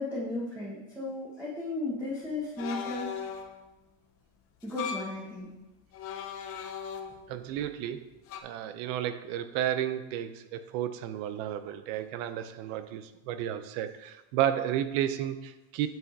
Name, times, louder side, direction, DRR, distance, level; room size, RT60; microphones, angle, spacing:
voice 1, 0.0-3.2 4.6-5.5, left 2 dB, 5° right, -9 dB, 1.4 m, -35 dB
sound 1, 2.6-3.6 4.6-5.2 5.9-7.4 8.3-8.4, left 7 dB, 35° left, 0.6 m, -38 dB
voice 2, 7.3-8.1 8.4-15.9, right 11 dB, 65° right, 11 dB, 0.6 m, -32 dB
9.0 x 5.7 x 2.8 m, 0.98 s
cardioid pair, 155°, 41 cm